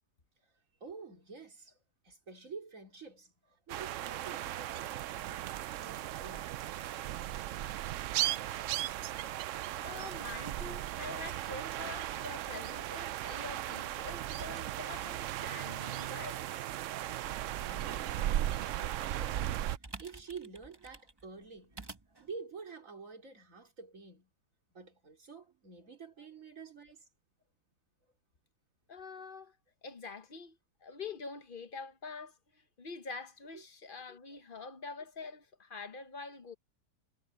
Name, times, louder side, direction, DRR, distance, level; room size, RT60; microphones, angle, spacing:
voice 1, 0.8-1.8 2.0-6.6 17.5-21.8 22.1-24.3 24.7-27.1 33.5-33.7 34.3-34.4, right 5 dB, 50° right, 4.0 m, -49 dB
sound 1, 3.7-19.8, right 13 dB, 85° right, 0.6 m, -37 dB
voice 2, 9.8-16.4 28.9-29.5 29.8-36.5, left 4 dB, 40° left, 0.9 m, -46 dB
sound 2, 19.3-22.3, right 2 dB, 15° right, 1.0 m, -51 dB
omnidirectional pair, 1.8 m